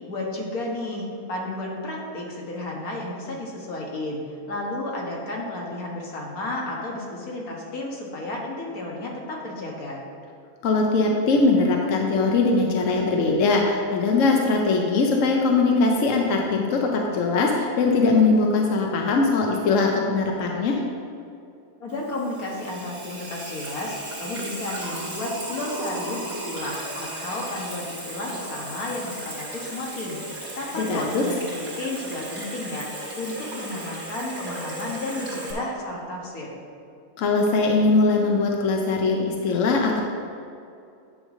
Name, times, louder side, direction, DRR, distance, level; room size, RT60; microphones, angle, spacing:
voice 1, 0.1-10.0 21.8-30.2 30.5-32.9 33.1-36.6, left 2 dB, 80° left, -2 dB, 1.8 m, -32 dB
voice 2, 10.6-20.8 30.8-31.2 37.2-40.0, left 3 dB, 65° left, 0 dB, 1.1 m, -21 dB
Water tap faucet / Sink (filling or washing), 21.9-35.5, right 1 dB, 45° right, 2.5 m, -36 dB
9.8 x 3.3 x 6.3 m, 2.5 s
omnidirectional pair, 1.5 m